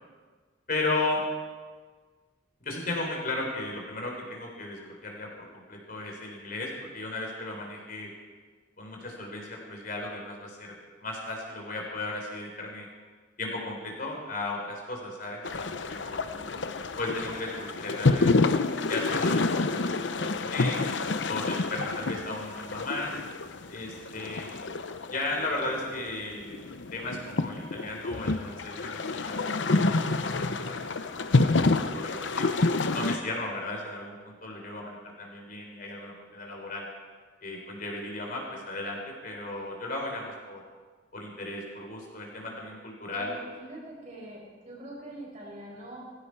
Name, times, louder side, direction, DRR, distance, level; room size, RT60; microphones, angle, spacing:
voice 1, 0.7-1.2 2.6-5.3 5.5-8.1 8.8-10.7 11.0-12.9 13.4-16.2 17.0-18.3 18.9-20.8 21.3-23.1 23.7-24.5 25.0-26.6 26.9-29.9 30.2-30.9 31.4-32.6 32.9-36.9 37.4-40.6 41.1-43.4, left 2 dB, 45° left, 0 dB, 3.7 m, -35 dB
sound 1, 15.4-33.2, left 3 dB, 70° left, 0.8 m, -28 dB
voice 2, 16.3-16.9 43.1-46.0, right 1 dB, 40° right, -4 dB, 5.4 m, -44 dB
18.0 x 15.5 x 4.8 m, 1.5 s
head